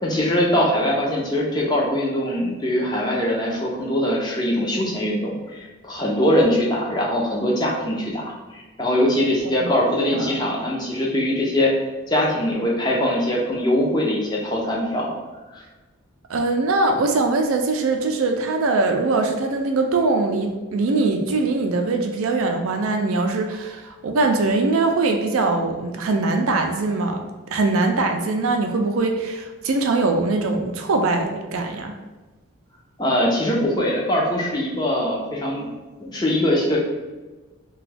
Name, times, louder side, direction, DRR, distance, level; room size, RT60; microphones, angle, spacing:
voice 1, 0.0-11.7 12.1-15.1 15.5-15.6 33.0-35.6 36.0-36.8, left 1 dB, 20° left, -3 dB, 0.5 m, -22 dB
voice 2, 16.3-32.0, right 3 dB, 85° right, 4 dB, 0.4 m, -22 dB
2.9 x 2.3 x 3.3 m, 1.2 s
head